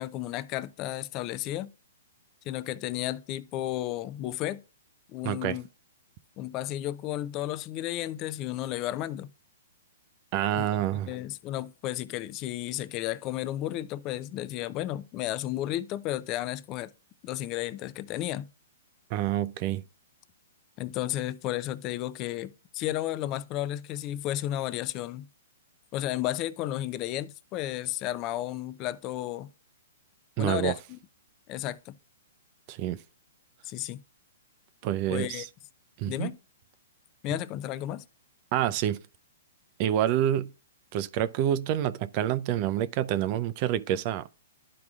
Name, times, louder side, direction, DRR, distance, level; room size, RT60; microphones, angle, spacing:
voice 1, 0.0-1.7 2.5-4.6 5.1-5.7 6.4-9.3 10.6-10.7 11.1-16.9 17.2-18.5 20.8-25.3 25.9-29.5 30.4-31.0 31.5-31.9 33.6-34.0 35.1-35.5 36.1-36.4 37.2-38.0, left 14 dB, 35° left, 0.5 m, -33 dB
voice 2, 5.2-5.6 10.3-11.1 19.1-19.8 30.4-30.8 32.7-33.0 34.8-35.5 36.0-36.3 38.5-39.0 39.8-40.5 40.9-44.3, right 11 dB, 40° right, 0.5 m, -27 dB
12.0 x 4.7 x 2.4 m
hypercardioid pair, 130°, 0 cm